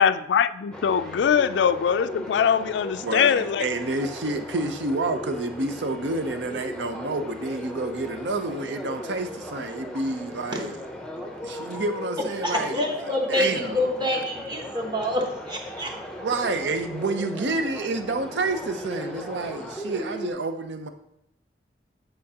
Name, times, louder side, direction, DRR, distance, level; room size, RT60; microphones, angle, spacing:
voice 1, 0.0-3.7, left 7 dB, 80° left, 0.3 m, -22 dB
sound 1, 0.7-20.3, left 1 dB, 5° left, 0.6 m, -37 dB
voice 2, 3.0-10.7 11.2-12.8 13.3-13.8 14.1-14.2 16.2-20.9, right 2 dB, 80° right, 0.6 m, -29 dB
voice 3, 12.4-15.9, left 1 dB, 25° right, 0.9 m, -27 dB
8.7 x 4.5 x 2.8 m
head